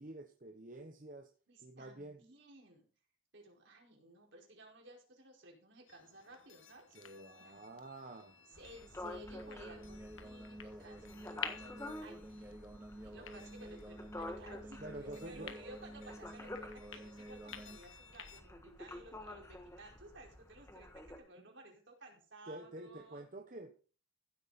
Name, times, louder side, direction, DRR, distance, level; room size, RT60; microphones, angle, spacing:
voice 1, 0.0-1.3 1.6-2.2 6.9-8.4 14.8-15.6 22.5-23.8, right 1 dB, 40° right, 1.0 m, -48 dB
voice 2, 1.5-2.9 3.3-7.0 7.4-7.6 8.6-12.5 13.0-23.2, right 2 dB, 60° right, 4.8 m, -56 dB
sound 1, 5.9-18.4, left 8 dB, 70° left, 1.4 m, -52 dB
sound 2, 8.5-21.2, left 1 dB, 15° left, 1.5 m, -50 dB
sound 3, 9.0-17.8, right 1 dB, 10° right, 0.8 m, -51 dB
15.5 x 8.7 x 4.2 m
head